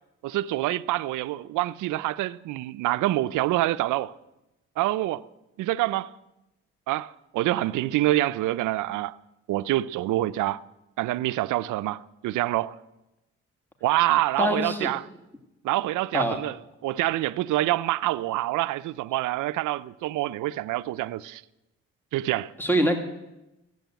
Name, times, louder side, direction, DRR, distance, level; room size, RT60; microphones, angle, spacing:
voice 1, 0.2-4.1 4.8-5.3 5.6-6.1 6.9-9.2 9.5-10.6 11.0-12.8 13.8-15.0 15.6-16.6 16.8-21.4 22.1-22.5, right 16 dB, 85° right, 0.5 m, -26 dB
voice 2, 14.4-14.9 16.1-16.4 22.6-23.0, equal, 5° left, 2.1 m, -24 dB
15.5 x 7.8 x 9.1 m
cardioid pair, 65°, 30 cm